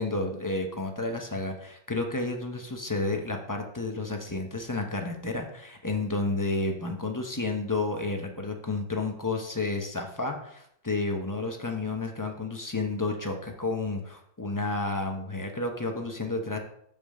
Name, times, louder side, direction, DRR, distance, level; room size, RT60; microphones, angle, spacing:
voice 1, 0.0-16.6, left 3 dB, 20° left, 3 dB, 0.5 m, -31 dB
5.4 x 5.2 x 6.5 m, 0.71 s
omnidirectional pair, 1.6 m